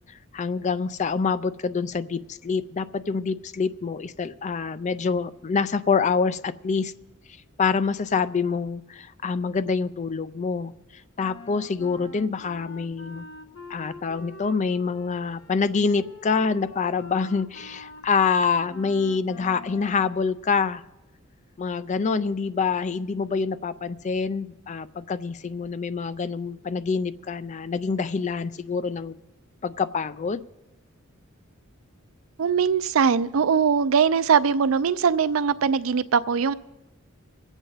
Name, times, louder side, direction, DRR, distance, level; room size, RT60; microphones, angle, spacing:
voice 1, 0.1-6.9 7.6-10.7 11.2-13.3 13.7-20.8 21.6-29.2 29.6-30.4, left 5 dB, 35° left, 14 dB, 0.4 m, -26 dB
Wind instrument woodwind instrument, 11.2-20.2, left 3 dB, 65° left, 1.3 m, -45 dB
voice 2, 32.4-36.5, right 6 dB, 75° right, 15 dB, 0.4 m, -21 dB
23.5 x 8.0 x 4.0 m, 1.0 s
head